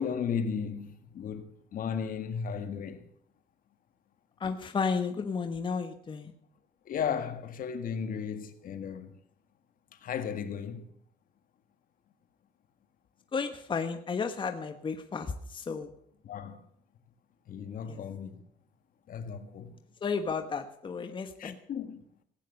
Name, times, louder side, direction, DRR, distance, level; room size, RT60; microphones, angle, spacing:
voice 1, 0.0-3.1 6.9-9.2 10.0-10.9 16.2-16.6 17.5-18.4 19.1-19.8 21.4-22.0, left 7 dB, 55° left, 1.7 m, -35 dB
voice 2, 4.4-6.3 13.3-15.9 17.9-18.0 20.0-21.6, left 5 dB, 30° left, 1.2 m, -33 dB
17.0 x 9.3 x 6.6 m
cardioid pair, 110°, 17 cm